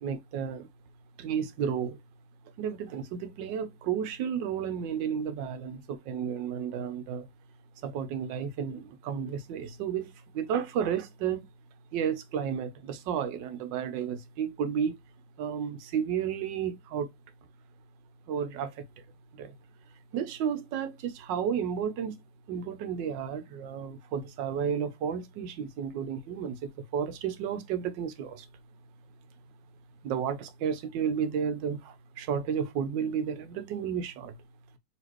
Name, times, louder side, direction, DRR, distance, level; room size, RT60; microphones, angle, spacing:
voice 1, 0.0-0.7 1.2-2.0 2.6-7.3 7.8-11.5 11.9-14.9 15.4-17.1 18.3-18.8 19.3-19.5 20.1-22.2 22.5-28.5 30.0-34.4, right 7 dB, 85° right, 1.4 m, -32 dB
4.2 x 3.3 x 3.0 m
omnidirectional pair, 1.9 m